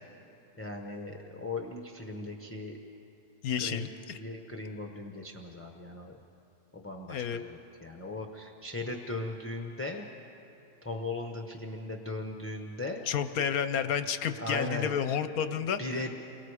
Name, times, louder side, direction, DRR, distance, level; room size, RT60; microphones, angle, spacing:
voice 1, 0.6-2.8 3.6-3.9 4.2-6.1 6.7-10.1 10.8-13.0 14.4-14.9 15.8-16.1, left 2 dB, 10° left, 2 dB, 0.8 m, -38 dB
voice 2, 3.4-4.2 7.1-7.4 13.1-16.1, left 8 dB, 65° left, 11 dB, 1.1 m, -31 dB
29.0 x 22.5 x 4.9 m, 2.9 s
omnidirectional pair, 1.8 m